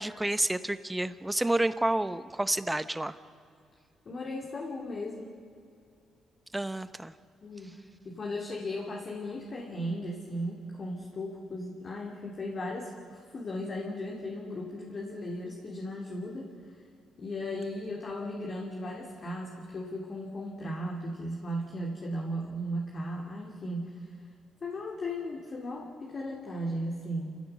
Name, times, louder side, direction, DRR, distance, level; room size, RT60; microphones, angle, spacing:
voice 1, 0.0-3.2 6.5-7.1, right 1 dB, 10° right, 13 dB, 0.9 m, -29 dB
voice 2, 4.0-5.4 7.4-7.7 8.0-16.8 17.2-24.1 24.6-27.4, left 1 dB, 45° left, -1 dB, 2.8 m, -36 dB
29.0 x 16.0 x 6.9 m, 2.4 s
cardioid pair, 90°, 0 cm